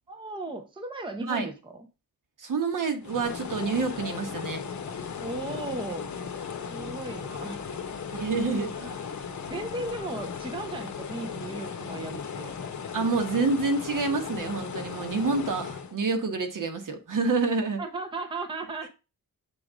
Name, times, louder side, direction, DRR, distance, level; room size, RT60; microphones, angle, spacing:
voice 1, 0.1-1.7 5.2-6.1 6.7-7.6 8.3-8.7 9.5-12.5 17.8-18.9, right 2 dB, 15° right, 0.8 m, -36 dB
voice 2, 2.4-4.6 8.1-8.9 12.9-17.8, right 4 dB, 65° right, 1.5 m, -28 dB
sound 1, 3.0-16.0, left 6 dB, 55° left, 0.9 m, -37 dB
7.6 x 3.7 x 5.0 m
wide cardioid pair, 170°, 35 cm